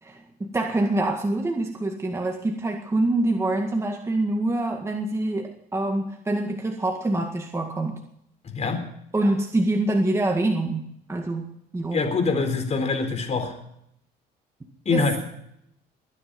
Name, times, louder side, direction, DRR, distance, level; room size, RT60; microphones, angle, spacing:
voice 1, 0.0-8.0 9.1-10.8 11.1-12.0 14.9-15.0, right 2 dB, 15° right, 2 dB, 1.9 m, -25 dB
voice 2, 11.9-13.5 14.9-15.2, left 4 dB, 40° left, 7 dB, 4.2 m, -24 dB
22.0 x 10.0 x 5.3 m, 0.75 s
cardioid pair, 110°, 17 cm